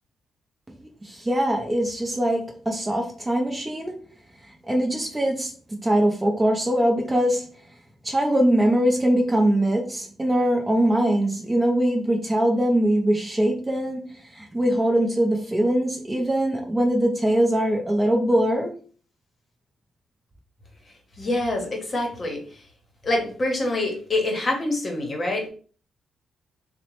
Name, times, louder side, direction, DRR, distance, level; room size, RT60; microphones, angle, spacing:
voice 1, 1.0-3.9 4.6-5.5 5.8-7.5 8.0-18.7, right 1 dB, 15° right, 1 dB, 0.6 m, -22 dB
voice 2, 21.2-22.6 23.0-25.5, left 2 dB, 35° left, 1 dB, 0.9 m, -26 dB
2.8 x 2.0 x 3.0 m, 0.41 s
cardioid pair, 95°, 0 cm